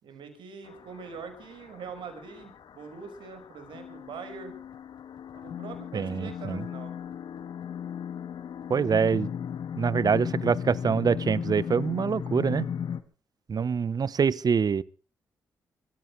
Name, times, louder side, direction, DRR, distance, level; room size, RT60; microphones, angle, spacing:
voice 1, 0.0-4.6 5.3-6.9, right 5 dB, 70° right, 5.5 m, -43 dB
sound 1, 0.7-13.0, left 8 dB, 65° left, 1.7 m, -36 dB
voice 2, 5.9-6.6 8.7-9.3 9.8-12.7 13.5-14.8, right 6 dB, 50° right, 1.0 m, -25 dB
25.0 x 14.5 x 3.3 m
hypercardioid pair, 40°, 8 cm